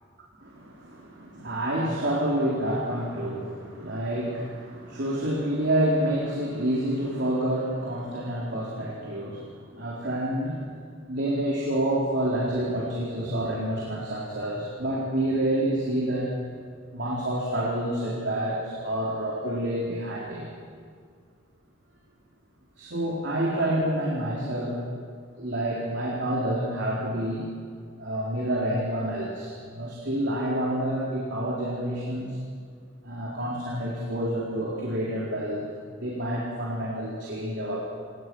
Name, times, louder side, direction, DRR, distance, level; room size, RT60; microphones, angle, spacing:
voice 1, 0.4-10.7 11.1-16.3 16.9-20.5 22.8-24.8 25.4-27.5 28.0-32.4 33.0-37.8, right 1 dB, 60° right, -4 dB, 4.1 m, -28 dB
28.0 x 19.0 x 6.3 m, 2.1 s
head